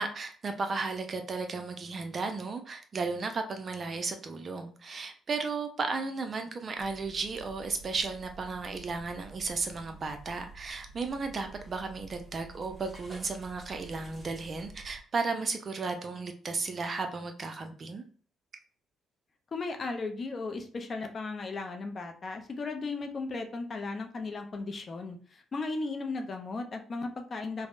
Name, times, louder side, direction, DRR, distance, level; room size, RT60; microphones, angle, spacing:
voice 1, 0.0-18.0, right 4 dB, 45° right, 6 dB, 0.5 m, -34 dB
sound 1, 6.8-15.0, right 3 dB, 10° right, 1.3 m, -50 dB
voice 2, 19.5-27.7, left 3 dB, 45° left, 5 dB, 0.5 m, -36 dB
3.4 x 2.1 x 2.5 m, 0.43 s
cardioid pair, 90°, 0 cm